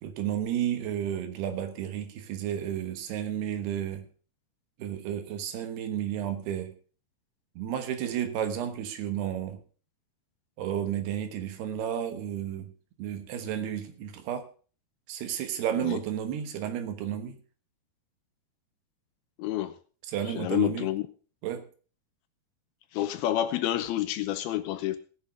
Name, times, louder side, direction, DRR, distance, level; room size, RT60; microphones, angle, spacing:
voice 1, 0.0-4.0 4.8-6.7 7.6-9.6 10.6-12.7 13.0-14.5 15.1-17.4 20.1-20.9 21.4-21.7, right 10 dB, 80° right, 8 dB, 3.3 m, -32 dB
voice 2, 19.4-19.8 20.3-21.0 22.9-25.0, left 13 dB, 80° left, 11 dB, 2.6 m, -29 dB
17.5 x 6.8 x 5.1 m, 0.39 s
omnidirectional pair, 4.7 m